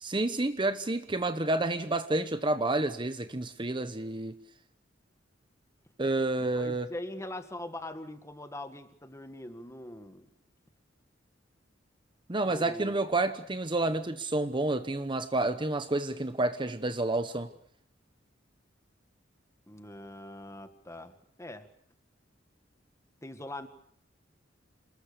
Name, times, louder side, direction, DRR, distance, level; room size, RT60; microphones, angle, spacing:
voice 1, 0.0-4.3 6.0-6.9 12.3-17.5, right 2 dB, 25° right, 1.0 m, -29 dB
voice 2, 6.4-10.3 12.5-13.0 19.7-21.7 23.2-23.7, left 1 dB, 15° left, 1.8 m, -42 dB
27.5 x 21.0 x 6.9 m
head